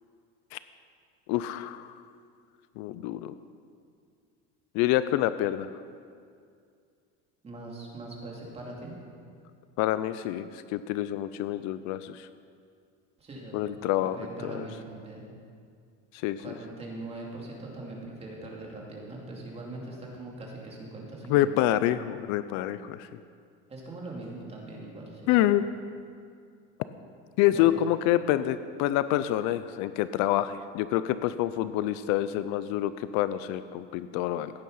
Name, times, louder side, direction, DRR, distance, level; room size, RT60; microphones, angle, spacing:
voice 1, 1.3-1.9 2.8-3.3 4.7-5.7 9.8-12.3 13.5-14.2 14.5-14.6 16.1-16.4 21.3-23.1 25.3-25.6 27.4-34.5, left 13 dB, 65° left, 13 dB, 0.6 m, -27 dB
voice 2, 7.4-8.9 13.2-13.6 14.0-15.3 16.4-21.5 23.7-25.3 27.5-27.8, right 2 dB, 20° right, -2 dB, 2.7 m, -41 dB
16.0 x 9.3 x 5.6 m, 2.3 s
cardioid pair, 150°, 31 cm